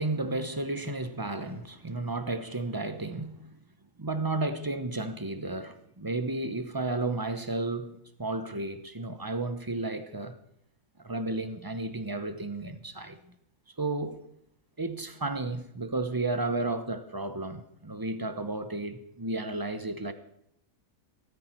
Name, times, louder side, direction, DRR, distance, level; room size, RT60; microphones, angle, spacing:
voice 1, 0.0-3.5 4.0-10.4 11.0-13.2 13.8-14.2 14.8-20.1, right 2 dB, 15° right, 0.8 m, -33 dB
17.0 x 14.0 x 4.6 m
omnidirectional pair, 1.6 m